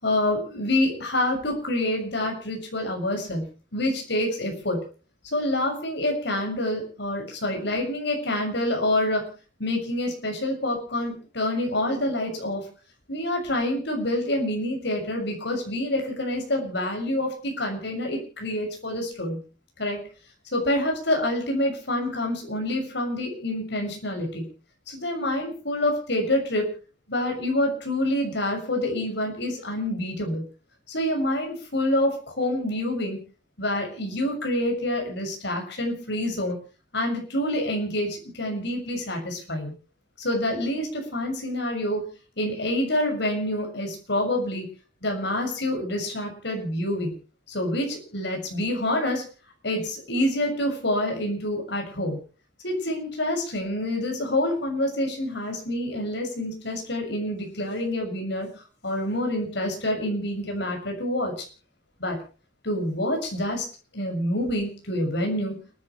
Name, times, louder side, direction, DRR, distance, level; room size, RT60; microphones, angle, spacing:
voice 1, 0.0-4.8 5.3-9.3 9.6-12.6 13.1-19.4 19.8-20.0 20.5-24.5 24.9-26.7 27.1-30.4 30.9-33.2 33.6-36.6 36.9-39.7 40.2-42.1 42.4-44.6 45.0-47.1 47.5-49.2 49.6-52.2 52.6-58.5 58.8-61.4 62.0-62.2 62.6-63.6 63.9-65.6, left 1 dB, 65° left, 2 dB, 6.6 m, -27 dB
30.0 x 11.0 x 3.3 m, 0.37 s
head